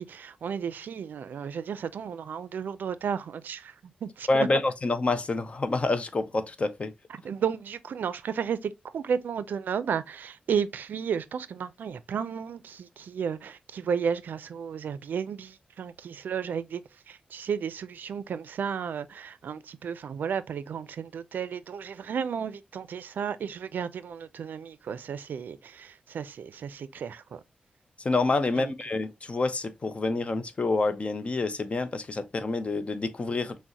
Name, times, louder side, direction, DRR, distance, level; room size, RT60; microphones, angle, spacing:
voice 1, 0.0-4.5 7.1-16.8 17.1-27.4 28.6-28.7, right 7 dB, 80° right, 0.4 m, -33 dB
voice 2, 4.3-6.9 28.0-33.6, left 3 dB, 40° left, 0.6 m, -27 dB
6.1 x 2.1 x 2.8 m
cardioid pair, 70°, 3 cm